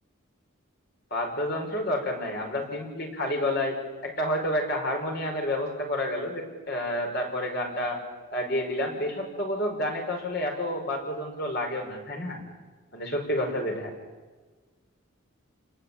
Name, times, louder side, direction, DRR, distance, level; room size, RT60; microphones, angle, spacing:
voice 1, 1.1-3.8 4.0-8.0 8.3-12.4 12.9-13.9, left 1 dB, 50° left, 2 dB, 5.5 m, -29 dB
29.0 x 19.5 x 8.7 m, 1.3 s
head